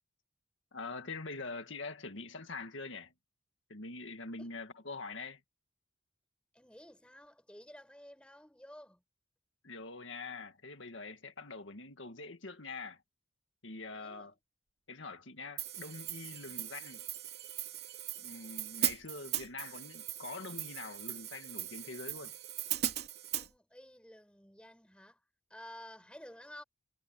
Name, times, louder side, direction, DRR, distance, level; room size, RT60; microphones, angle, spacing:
voice 1, 0.7-3.1 3.7-5.4 9.6-13.0 13.6-14.3 14.9-17.0 18.2-22.4, left 3 dB, 80° left, 1.9 m, -44 dB
voice 2, 6.5-9.0 13.9-14.3 23.3-25.2 25.5-26.6, left 1 dB, 5° left, 7.3 m, -53 dB
Hi-hat, 15.6-23.5, right 11 dB, 55° right, 3.1 m, -39 dB
Bell, 15.9-18.6 18.9-19.1 19.4-19.5 19.9-20.0 20.3-20.4, right 15 dB, 85° right, 5.2 m, -59 dB
head